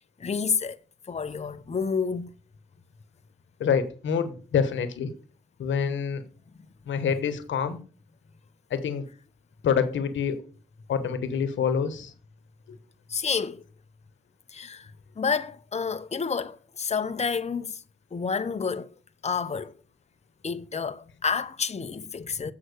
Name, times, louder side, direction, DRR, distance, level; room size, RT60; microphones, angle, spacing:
voice 1, 0.2-0.8 1.1-2.3 13.1-13.6 14.5-14.9 15.2-17.8 18.1-18.9 19.2-19.7 20.4-22.5, left 5 dB, 35° left, 0.8 m, -29 dB
voice 2, 3.6-5.1 5.6-6.2 6.9-7.8 8.7-9.0 9.6-10.4 10.9-12.1, left 7 dB, 85° left, 1.1 m, -26 dB
7.9 x 5.7 x 6.5 m
cardioid pair, 50°, 19 cm